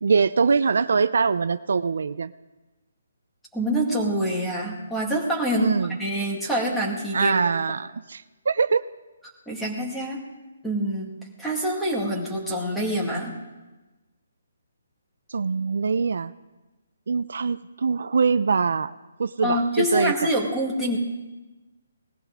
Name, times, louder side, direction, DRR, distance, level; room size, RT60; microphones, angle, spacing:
voice 1, 0.0-2.3 5.6-6.0 7.1-8.9 15.3-16.3 17.1-20.1, right 5 dB, 70° right, 14 dB, 0.5 m, -23 dB
voice 2, 3.5-7.4 9.5-10.2 10.6-11.1 11.4-13.4 19.4-21.0, equal, 5° left, -2 dB, 1.9 m, -26 dB
19.5 x 14.5 x 3.7 m, 1.1 s
hypercardioid pair, 170°, 0 cm